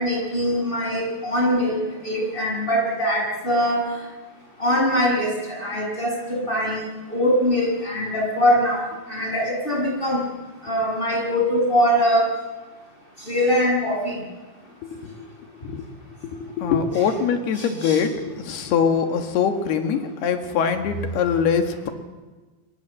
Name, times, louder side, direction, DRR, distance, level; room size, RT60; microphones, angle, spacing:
voice 1, 0.0-3.9 4.6-8.8 9.1-10.2 10.6-12.3 13.3-14.1 16.9-17.1 17.5-18.0, equal, 10° left, -1 dB, 8.0 m, -22 dB
voice 2, 14.9-15.3 15.6-15.9 16.5-21.9, left 6 dB, 70° left, 6 dB, 3.7 m, -23 dB
27.5 x 23.0 x 7.7 m, 1.3 s
omnidirectional pair, 5.0 m